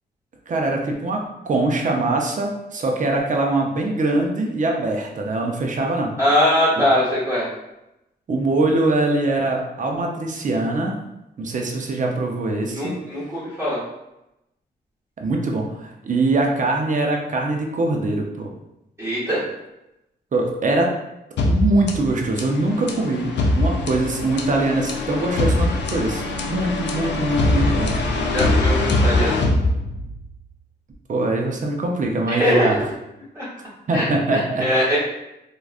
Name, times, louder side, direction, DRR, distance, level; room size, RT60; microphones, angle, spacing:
voice 1, 0.5-6.1 6.8-6.9 8.3-11.0 11.4-12.9 15.2-18.5 20.3-20.9 21.4-23.3 23.6-27.9 31.1-32.8 33.9-34.7, right 2 dB, 45° right, 1 dB, 0.5 m, -22 dB
voice 2, 6.2-7.5 12.7-13.8 19.0-19.4 28.3-29.5 32.3-32.7 33.3-33.5 33.9-35.0, equal, 15° right, -9 dB, 1.0 m, -21 dB
sound 1, 21.4-30.3, left 2 dB, 80° left, 0.4 m, -22 dB
3.4 x 2.3 x 2.4 m, 0.90 s
cardioid pair, 90°, 18 cm